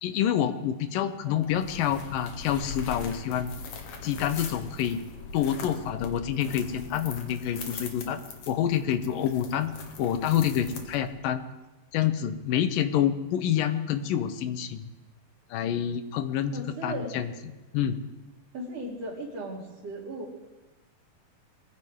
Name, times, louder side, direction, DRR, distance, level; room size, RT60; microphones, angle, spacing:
voice 1, 0.0-3.5 4.0-5.0 5.3-8.2 8.5-9.7 10.0-11.5 11.9-14.9 15.5-16.5 16.8-17.3 17.7-18.0, left 10 dB, 75° left, 10 dB, 2.4 m, -27 dB
voice 2, 1.0-1.4 16.5-17.1 18.5-20.3, right 1 dB, 45° right, -3 dB, 4.0 m, -37 dB
sound 1, 1.4-11.3, left 4 dB, 60° left, 2.5 m, -41 dB
22.0 x 15.0 x 3.7 m, 1.1 s
omnidirectional pair, 4.2 m